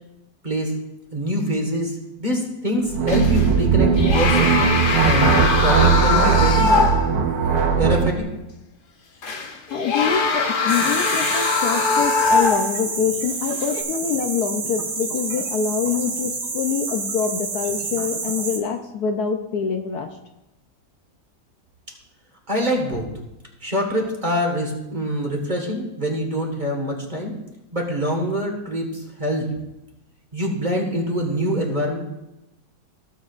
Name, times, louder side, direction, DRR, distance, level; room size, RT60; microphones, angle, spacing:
voice 1, 0.4-0.7 1.1-4.5 5.0-6.8 7.3-8.3 22.5-23.1 23.6-27.3 27.7-29.6 30.3-32.0, equal, 25° right, 1 dB, 1.5 m, -24 dB
sound 1, 2.9-8.1, right 6 dB, 80° right, 1.6 m, -19 dB
sound 2, 3.1-3.5 4.0-7.2 7.6-7.7 9.2-12.9 13.6-13.8, left 3 dB, 45° left, 0.7 m, -21 dB
voice 2, 9.7-20.2, left 7 dB, 70° left, 5 dB, 1.1 m, -25 dB
sound 3, 10.7-18.6, right 4 dB, 65° right, 1.9 m, -29 dB
16.5 x 7.4 x 2.5 m, 0.93 s
omnidirectional pair, 1.9 m